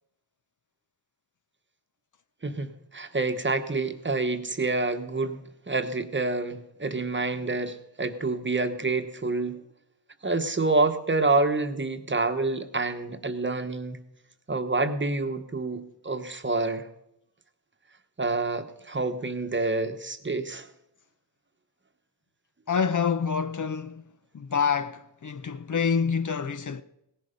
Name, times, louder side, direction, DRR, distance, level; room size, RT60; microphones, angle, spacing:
voice 1, 2.4-9.6 10.2-14.0 14.5-16.9 18.2-20.7, right 3 dB, 25° right, 1.1 m, -28 dB
voice 2, 22.7-26.8, left 6 dB, 45° left, 0.7 m, -27 dB
17.5 x 11.0 x 5.2 m
wide cardioid pair, 90°, 42 cm